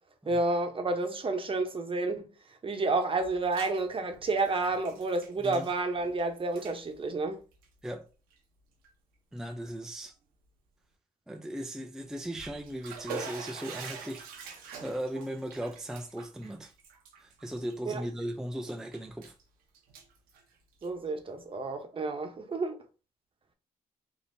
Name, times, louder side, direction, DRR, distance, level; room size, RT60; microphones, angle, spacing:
voice 1, 0.3-2.3 2.6-7.4 17.8-18.0 20.8-22.8, right 3 dB, 35° right, 0.9 m, -30 dB
Bathtub (filling or washing), 3.2-3.8 4.1-6.2 6.5-6.8 7.5-7.7 8.3-8.4 8.8-8.9 12.1-18.2 18.6-19.4 19.7-21.1, right 5 dB, 85° right, 0.9 m, -45 dB
voice 2, 9.3-10.2 11.3-14.3 14.6-16.7 17.2-19.3, right 1 dB, 5° right, 0.4 m, -37 dB
3.4 x 2.6 x 2.7 m
supercardioid pair, 60°, 15 cm